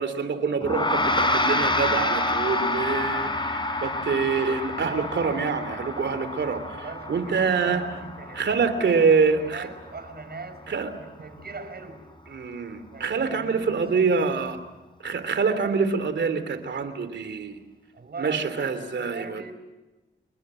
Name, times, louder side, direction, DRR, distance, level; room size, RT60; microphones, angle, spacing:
voice 1, 0.0-7.8 8.3-9.7 10.7-10.9 12.3-14.6 15.0-17.6 18.2-19.4, right 5 dB, 75° right, 11 dB, 3.1 m, -25 dB
Gong, 0.6-10.1, left 2 dB, 25° left, 5.0 m, -28 dB
voice 2, 6.7-12.0 12.9-14.5 17.9-19.5, right 4 dB, 60° right, 9 dB, 5.0 m, -41 dB
28.0 x 21.0 x 7.7 m, 1.1 s
cardioid pair, 60°, 19 cm